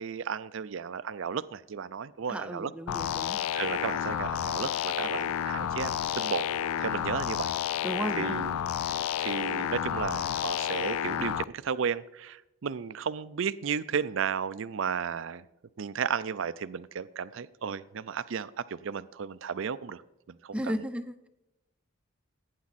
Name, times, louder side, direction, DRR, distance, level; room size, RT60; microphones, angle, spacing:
voice 1, 0.0-2.7 3.5-6.4 6.8-7.5 8.2-8.6 8.9-15.4 15.8-20.0 20.3-20.5, right 6 dB, 60° right, 16 dB, 0.4 m, -34 dB
voice 2, 2.3-3.4 7.8-8.4 20.5-21.3, equal, 5° right, 9 dB, 0.5 m, -34 dB
sound 1, 2.9-11.4, left 9 dB, 80° left, 0.4 m, -31 dB
17.5 x 9.6 x 4.1 m, 0.91 s
head